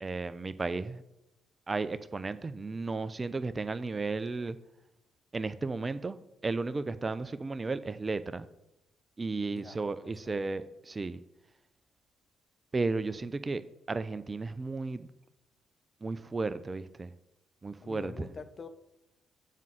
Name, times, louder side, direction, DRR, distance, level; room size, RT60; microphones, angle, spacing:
voice 1, 0.0-1.0 1.7-4.6 5.3-8.4 9.2-11.2 12.7-13.6 13.9-15.1 16.0-17.1 17.6-18.3, right 3 dB, 30° right, 13 dB, 0.6 m, -34 dB
voice 2, 10.0-10.4 17.8-18.7, left 4 dB, 40° left, 9 dB, 1.0 m, -45 dB
7.4 x 5.4 x 7.4 m, 0.87 s
hypercardioid pair, 45°, 0 cm